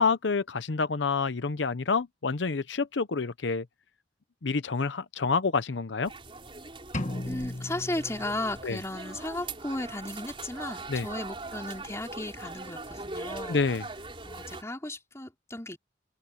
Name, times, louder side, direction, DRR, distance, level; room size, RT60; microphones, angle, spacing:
voice 1, 0.0-3.7 4.4-6.1 8.6-8.8 10.9-11.1 13.5-13.9, left 4 dB, 90° left, 0.8 m, -28 dB
sound 1, 6.0-14.6, right 3 dB, 30° right, 4.7 m, -41 dB
sound 2, 6.9-8.9, left 1 dB, 40° left, 1.8 m, -36 dB
voice 2, 7.3-13.6 14.2-15.8, left 1 dB, 15° left, 4.3 m, -35 dB
open air
head